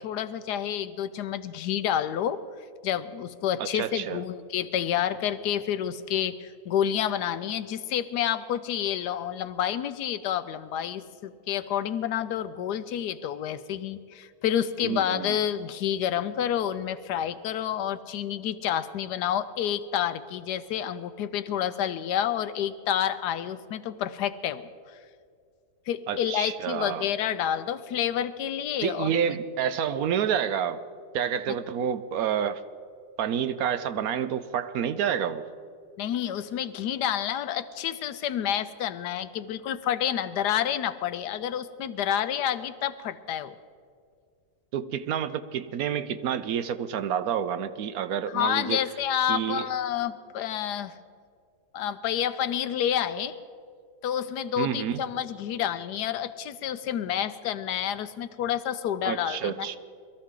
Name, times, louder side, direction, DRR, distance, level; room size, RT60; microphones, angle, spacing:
voice 1, 0.0-2.4 2.8-25.0 25.9-29.1 36.0-43.6 48.3-50.9 51.7-53.4 54.0-59.5, left 10 dB, 80° left, 12 dB, 1.2 m, -29 dB
voice 2, 3.6-4.2 14.8-15.4 26.1-27.1 28.8-30.8 31.1-32.6 33.2-35.5 44.7-48.8 49.3-49.7 54.6-55.0 59.0-59.8, right 8 dB, 70° right, 12 dB, 1.0 m, -29 dB
22.0 x 14.0 x 3.7 m, 2.2 s
omnidirectional pair, 1.8 m